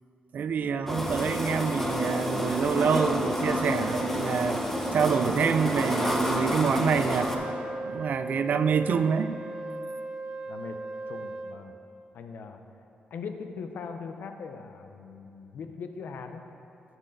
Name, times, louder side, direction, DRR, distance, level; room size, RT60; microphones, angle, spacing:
voice 1, 0.3-4.6 4.9-7.3 7.8-9.4, right 6 dB, 60° right, 11 dB, 0.3 m, -27 dB
sound 1, 0.9-7.4, equal, 10° left, 0.8 m, -29 dB
Wind instrument woodwind instrument, 7.3-11.7, right 2 dB, 25° right, 0.7 m, -37 dB
voice 2, 10.5-10.8 11.1-11.8 12.1-12.6 13.1-16.5, left 5 dB, 70° left, 7 dB, 0.6 m, -40 dB
9.0 x 7.5 x 3.9 m, 2.8 s
cardioid pair, 110°, 3 cm